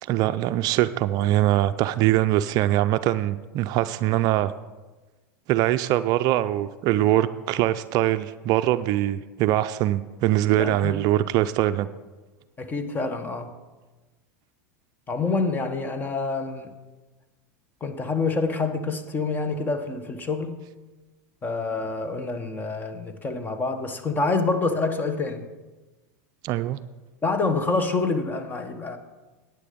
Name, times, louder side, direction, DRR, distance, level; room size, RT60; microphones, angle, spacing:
voice 1, 0.0-4.5 5.5-11.9 26.4-26.8, right 14 dB, 45° right, 0.4 m, -22 dB
voice 2, 10.6-11.0 12.6-13.5 15.1-16.7 17.8-20.6 21.4-25.4 27.2-29.0, left 3 dB, 20° left, 1.2 m, -27 dB
9.9 x 9.1 x 5.2 m
hypercardioid pair, 100°, 9 cm